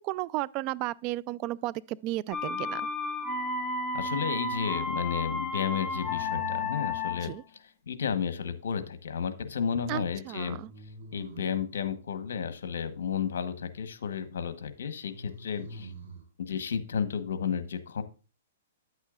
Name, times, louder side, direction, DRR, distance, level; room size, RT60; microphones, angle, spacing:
voice 1, 0.0-2.9 7.2-7.4 9.9-10.7, right 17 dB, 35° right, 0.3 m, -34 dB
sound 1, 2.3-7.4, left 3 dB, 20° left, 1.0 m, -32 dB
sound 2, 3.1-3.8 5.9-6.8 10.6-11.7 15.0-16.3, right 3 dB, 70° right, 4.0 m, -46 dB
voice 2, 3.9-7.3 7.9-10.6 11.1-15.9 16.4-18.0, left 7 dB, 75° left, 1.0 m, -32 dB
9.6 x 8.1 x 2.4 m
hypercardioid pair, 140°, 0 cm